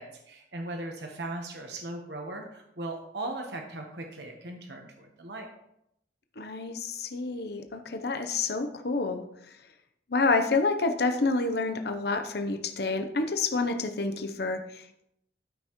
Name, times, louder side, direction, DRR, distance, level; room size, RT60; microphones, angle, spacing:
voice 1, 0.0-5.5, right 2 dB, 65° right, 2 dB, 1.2 m, -38 dB
voice 2, 6.4-9.2 10.1-15.0, left 3 dB, 60° left, 6 dB, 0.8 m, -28 dB
12.5 x 5.6 x 3.1 m, 0.77 s
head